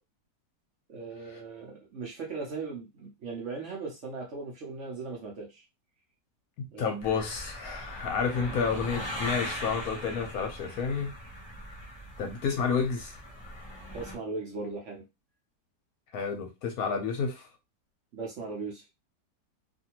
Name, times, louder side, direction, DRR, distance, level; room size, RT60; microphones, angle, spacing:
voice 1, 0.9-5.6 6.7-7.1 8.5-8.6 13.9-15.0 18.1-18.8, right 4 dB, 55° right, 0.9 m, -38 dB
voice 2, 6.6-11.1 12.2-13.1 16.1-17.5, left 5 dB, 65° left, 1.0 m, -30 dB
sound 1, 7.0-14.1, left 1 dB, 20° left, 0.9 m, -40 dB
2.7 x 2.6 x 2.9 m
omnidirectional pair, 1.8 m